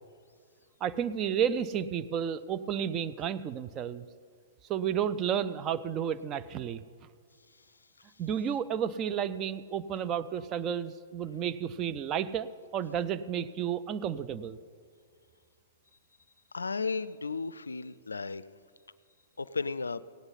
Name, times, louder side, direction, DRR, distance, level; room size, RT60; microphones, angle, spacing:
voice 1, 0.8-4.1 4.7-6.8 8.2-14.6, right 8 dB, 30° right, 13 dB, 0.4 m, -32 dB
voice 2, 16.5-18.4 19.4-20.0, left 4 dB, 90° left, 17 dB, 0.3 m, -34 dB
17.0 x 9.7 x 4.0 m, 2.1 s
hypercardioid pair, 120°, 0 cm